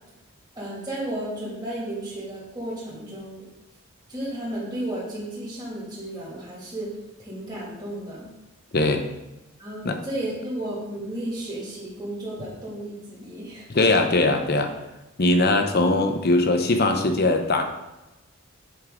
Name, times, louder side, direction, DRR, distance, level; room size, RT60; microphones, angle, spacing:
voice 1, 0.5-3.5 4.1-6.9 7.2-8.3 9.6-14.0, right 1 dB, 20° right, -7 dB, 2.5 m, -33 dB
voice 2, 8.7-9.1 9.8-10.0 13.7-14.7 15.2-17.7, left 2 dB, 50° left, 6 dB, 0.8 m, -20 dB
7.8 x 5.3 x 3.8 m, 1.0 s
head